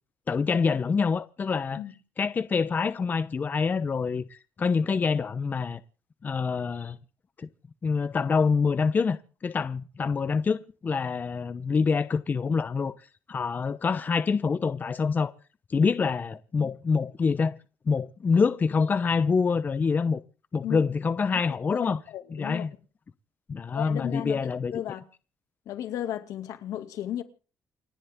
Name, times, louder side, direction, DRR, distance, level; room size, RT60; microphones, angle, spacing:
voice 1, 0.3-1.8 2.2-5.8 6.2-7.0 7.4-7.5 7.8-9.2 9.4-12.9 13.3-15.3 15.7-17.6 17.9-20.2 20.5-22.0 22.3-22.7 23.5-24.7, left 5 dB, 30° left, 0.9 m, -26 dB
voice 2, 21.7-22.6 23.7-25.1 25.7-27.2, left 11 dB, 90° left, 2.4 m, -34 dB
29.0 x 11.0 x 3.7 m
cardioid pair, 130°, 6 cm